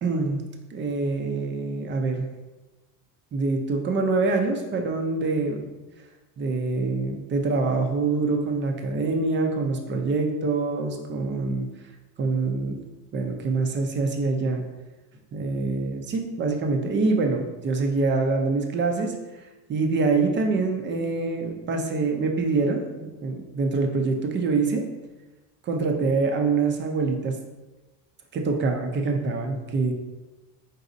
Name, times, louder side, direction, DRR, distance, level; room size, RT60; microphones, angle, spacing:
voice 1, 0.0-0.4 0.7-2.3 3.3-5.7 6.4-11.7 12.2-12.8 13.1-14.6 15.3-19.4 19.7-24.8 25.6-27.4 28.3-29.9, right 3 dB, 25° right, 3 dB, 0.5 m, -25 dB
4.0 x 3.9 x 2.6 m, 1.1 s
supercardioid pair, 120°, 45 cm